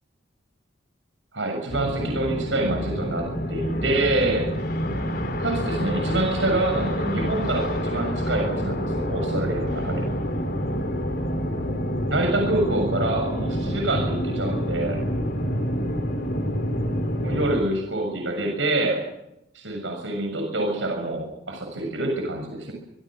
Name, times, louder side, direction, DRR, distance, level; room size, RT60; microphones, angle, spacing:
voice 1, 1.3-4.5 5.4-10.0 12.1-15.0 17.2-19.0 19.5-22.7, right 2 dB, 80° right, 2 dB, 6.6 m, -26 dB
sound 1, 1.7-17.6, equal, 50° left, 3.6 m, -27 dB
25.0 x 24.5 x 6.2 m, 0.84 s
head